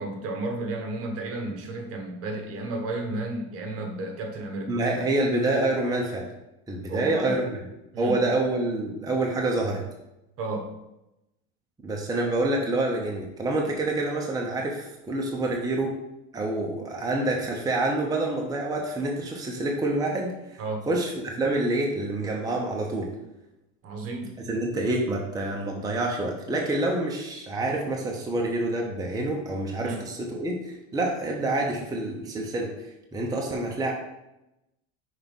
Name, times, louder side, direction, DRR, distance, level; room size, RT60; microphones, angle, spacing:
voice 1, 0.0-4.8 6.9-7.4 7.9-8.2 10.4-10.7 20.6-20.9 23.8-24.3 29.8-30.0, right 2 dB, 45° right, 4 dB, 1.3 m, -32 dB
voice 2, 4.7-6.3 6.7-7.6 8.0-9.8 11.8-15.9 16.3-23.1 24.5-32.7 33.1-33.9, right 2 dB, 10° right, -1 dB, 0.8 m, -27 dB
5.7 x 3.5 x 5.4 m, 0.90 s
supercardioid pair, 130°, 32 cm